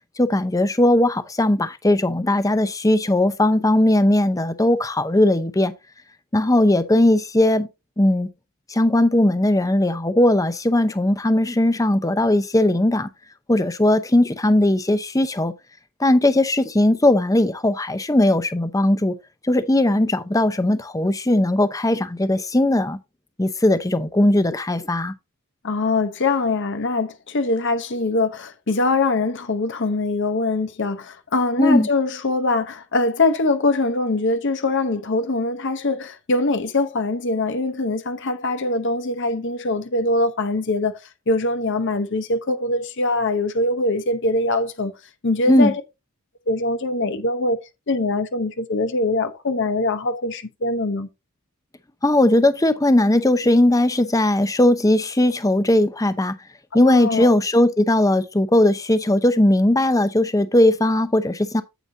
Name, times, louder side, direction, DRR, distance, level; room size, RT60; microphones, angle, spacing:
voice 1, 0.2-5.7 6.3-7.7 8.0-8.3 8.7-13.1 13.5-15.5 16.0-19.1 19.5-23.0 23.4-25.1 31.6-31.9 45.5-45.7 52.0-56.4 56.7-61.6, left 1 dB, 15° left, 0.7 m, -18 dB
voice 2, 25.6-41.0 41.3-44.9 45.2-45.8 46.5-47.6 47.9-51.1 56.7-57.3, left 2 dB, 55° left, 0.9 m, -23 dB
9.0 x 8.0 x 2.7 m
head